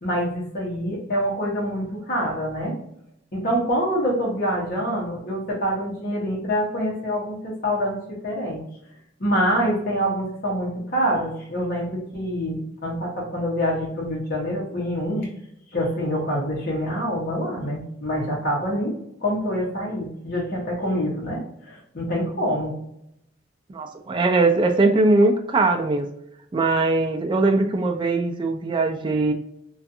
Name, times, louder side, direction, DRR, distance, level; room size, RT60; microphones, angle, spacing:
voice 1, 0.0-2.8 3.3-8.6 9.2-15.3 15.7-22.8, equal, 55° left, -5 dB, 0.9 m, -26 dB
voice 2, 23.7-26.1 26.5-29.3, right 2 dB, 25° right, 4 dB, 0.3 m, -20 dB
2.5 x 2.4 x 2.6 m, 0.76 s
head